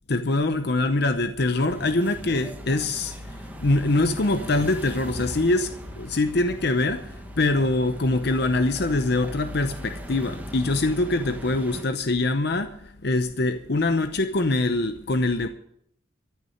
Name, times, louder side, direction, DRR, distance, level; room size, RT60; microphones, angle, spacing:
voice 1, 0.1-15.5, left 2 dB, 55° left, 0.8 m, -24 dB
sound 1, 1.7-11.8, equal, 10° right, 1.3 m, -40 dB
13.5 x 6.8 x 9.6 m
head